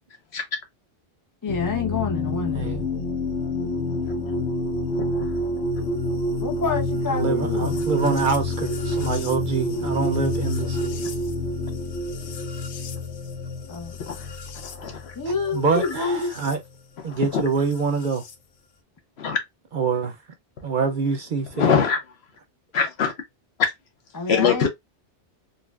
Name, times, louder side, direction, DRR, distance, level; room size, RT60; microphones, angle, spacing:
voice 1, 1.4-2.9 6.4-7.9 13.7-14.0 15.2-16.3 24.1-24.7, left 4 dB, 30° left, 0.4 m, -28 dB
sound 1, 1.5-16.6 17.7-18.3, left 1 dB, 85° left, 1.0 m, -28 dB
voice 2, 7.1-11.0 15.3-16.6 17.0-18.2 19.7-20.1 20.6-21.7, right 5 dB, 55° right, 0.6 m, -25 dB
voice 3, 14.6-15.1 15.7-15.9 17.0-17.4 19.2-19.4 21.6-22.0 22.7-23.1 24.3-24.7, left 6 dB, 70° left, 1.1 m, -23 dB
4.0 x 2.1 x 2.3 m
omnidirectional pair, 1.1 m